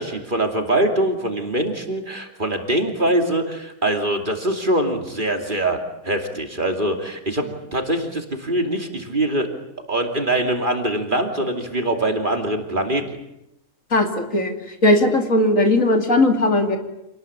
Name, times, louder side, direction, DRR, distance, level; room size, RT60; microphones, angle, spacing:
voice 1, 0.0-5.8 6.0-9.5 9.9-13.0, right 1 dB, 35° right, 4 dB, 2.9 m, -23 dB
voice 2, 13.9-14.5 14.8-16.8, left 1 dB, 60° left, 5 dB, 2.9 m, -18 dB
27.5 x 19.5 x 8.9 m, 0.87 s
omnidirectional pair, 1.6 m